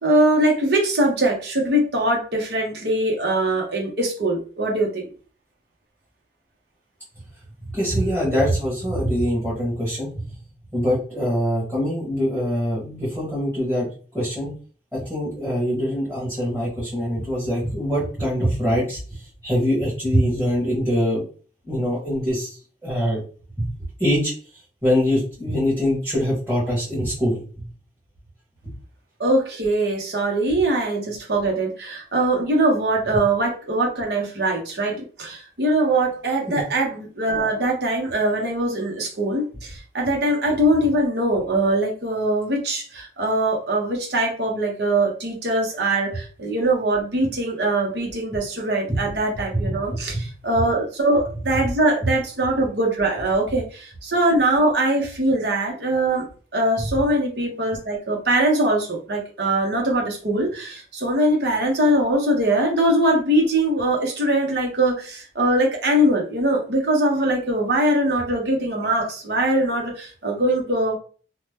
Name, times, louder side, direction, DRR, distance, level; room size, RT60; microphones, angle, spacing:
voice 1, 0.0-5.0 29.2-56.3 56.5-71.0, right 1 dB, 65° right, 0 dB, 1.0 m, -22 dB
voice 2, 7.7-10.1 10.7-13.9 14.1-14.5 14.9-21.2 21.7-23.2 23.6-23.7 24.0-24.3 24.8-27.7 28.6-28.7 36.5-36.6 48.9-49.0 49.5-50.2 56.8-56.9, equal, 10° right, -9 dB, 1.2 m, -23 dB
2.8 x 2.2 x 3.3 m, 0.39 s
head